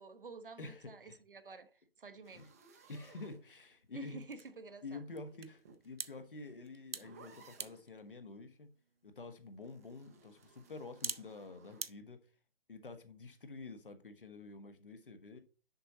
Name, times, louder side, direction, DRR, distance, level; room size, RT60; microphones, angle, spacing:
voice 1, 0.0-2.5 3.9-5.0, right 3 dB, 65° right, 1.0 m, -51 dB
voice 2, 0.6-1.2 2.3-2.5 2.9-4.2 4.8-8.7 9.0-12.2 12.7-15.4, left 3 dB, 65° left, 1.3 m, -48 dB
sound 1, 2.2-4.0 5.2-7.9 9.6-11.9, right 4 dB, 15° right, 0.6 m, -61 dB
sound 2, 2.5-11.9, right 5 dB, 85° right, 0.7 m, -50 dB
6.8 x 5.4 x 4.0 m
figure-of-eight pair, 140°, 29 cm